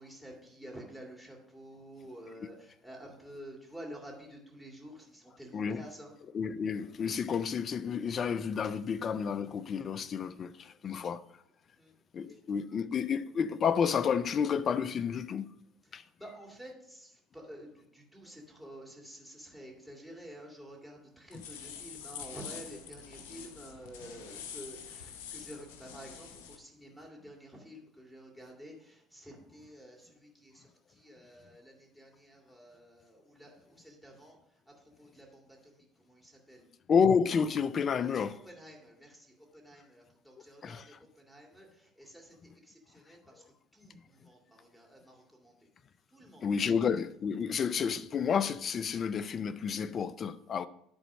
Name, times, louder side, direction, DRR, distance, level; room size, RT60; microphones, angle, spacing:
voice 1, 0.0-6.2 10.8-11.1 11.8-11.9 12.3-12.4 15.9-34.4 34.7-36.7 38.0-43.4 43.7-45.6 46.1-46.8, equal, ahead, 2.8 m, -50 dB
voice 2, 5.5-5.9 6.3-11.2 12.1-15.5 15.9-16.0 36.9-38.3 40.6-40.9 46.4-50.7, left 6 dB, 45° left, 0.5 m, -30 dB
sound 1, 21.3-26.6, left 7 dB, 85° left, 0.8 m, -46 dB
10.5 x 4.0 x 6.2 m
hypercardioid pair, 70°, 0 cm